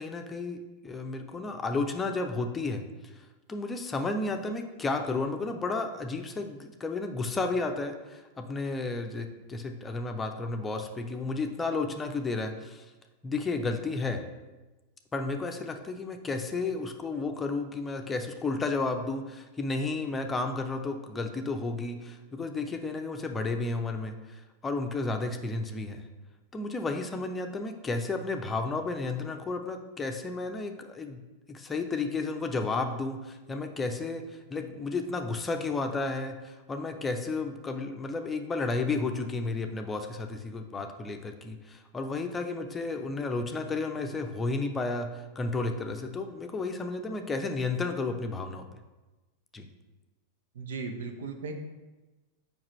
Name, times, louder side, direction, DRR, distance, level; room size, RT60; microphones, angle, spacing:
voice 1, 0.0-2.8 3.5-12.9 13.2-14.2 15.1-26.0 26.5-31.2 31.5-48.7 49.5-49.7, left 3 dB, 15° left, 5 dB, 0.7 m, -32 dB
voice 2, 50.5-51.5, right 4 dB, 60° right, 5 dB, 0.8 m, -36 dB
7.3 x 5.3 x 3.1 m, 1.2 s
figure-of-eight pair, 90°, 0 cm